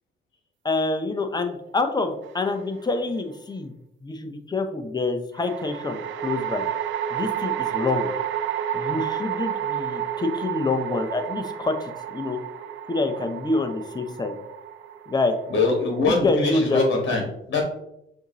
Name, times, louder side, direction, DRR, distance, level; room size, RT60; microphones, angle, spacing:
voice 1, 0.6-3.7 4.0-6.7 7.1-8.1 8.7-12.4 12.9-14.3 15.1-15.4 16.0-16.8, left 3 dB, 20° left, 5 dB, 0.7 m, -26 dB
sound 1, 2.3-3.0 5.4-16.7, right 9 dB, 75° right, 0.4 m, -31 dB
voice 2, 15.5-17.2 17.5-17.6, left 3 dB, 60° left, 0 dB, 1.2 m, -22 dB
6.2 x 2.7 x 3.0 m, 0.81 s
cardioid pair, 90°, 20 cm